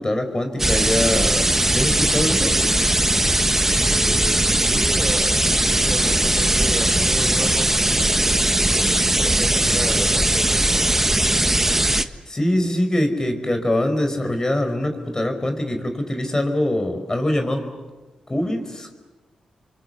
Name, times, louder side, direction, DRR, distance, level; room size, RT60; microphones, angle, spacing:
voice 1, 0.0-2.6 12.3-17.7 18.3-18.9, left 1 dB, 25° left, 6 dB, 5.1 m, -23 dB
sound 1, 0.6-12.0, right 1 dB, 15° right, 1.4 m, -19 dB
voice 2, 3.8-8.3 8.6-10.9, right 2 dB, 30° right, 6 dB, 3.4 m, -33 dB
29.5 x 24.5 x 8.2 m, 1.2 s
cardioid pair, 55°, 2 cm